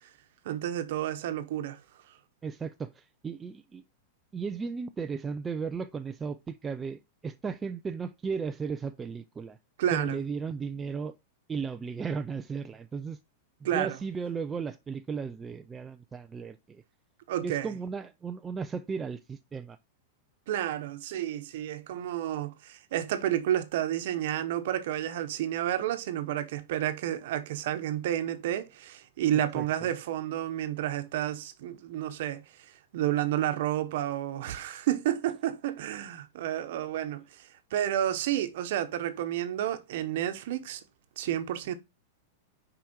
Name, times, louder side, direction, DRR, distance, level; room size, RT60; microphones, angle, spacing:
voice 1, 0.4-1.8 9.8-10.2 13.6-14.0 17.3-17.7 20.5-32.4 32.9-40.8 41.2-41.7, right 11 dB, 50° right, 0.9 m, -30 dB
voice 2, 2.4-3.8 4.3-9.6 9.9-11.2 11.5-13.2 13.7-16.8 17.4-19.8 29.5-29.9, right 5 dB, 10° right, 0.3 m, -35 dB
6.3 x 4.9 x 4.4 m
supercardioid pair, 175°, 0 cm